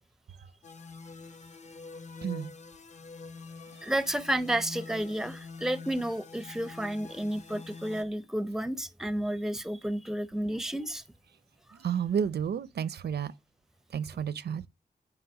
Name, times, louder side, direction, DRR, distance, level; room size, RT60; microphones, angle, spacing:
sound 1, 0.6-8.0, left 4 dB, 45° left, 0.8 m, -45 dB
voice 1, 2.2-2.5 11.8-13.3 13.9-14.6, right 8 dB, 90° right, 0.6 m, -31 dB
voice 2, 3.8-11.0, right 1 dB, 5° right, 0.5 m, -31 dB
9.6 x 3.3 x 6.3 m
wide cardioid pair, 120°, 17 cm